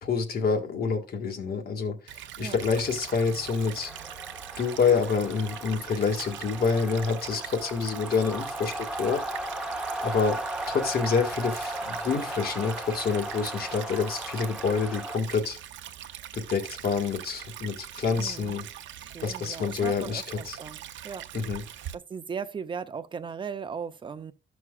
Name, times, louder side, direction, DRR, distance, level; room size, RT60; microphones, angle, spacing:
voice 1, 0.0-3.9 4.6-9.2 10.0-10.4 10.7-15.6 16.3-18.6 19.2-20.6 21.3-21.6, left 5 dB, 55° left, 1.7 m, -27 dB
Stream / Trickle dribble, 2.1-21.9, right 11 dB, 85° right, 0.6 m, -42 dB
sound 1, 2.5-15.2, right 1 dB, 5° right, 0.9 m, -37 dB
voice 2, 18.2-18.5 19.1-21.3 21.9-24.3, right 6 dB, 25° right, 0.5 m, -37 dB
13.0 x 6.1 x 2.3 m
cardioid pair, 140°, 19 cm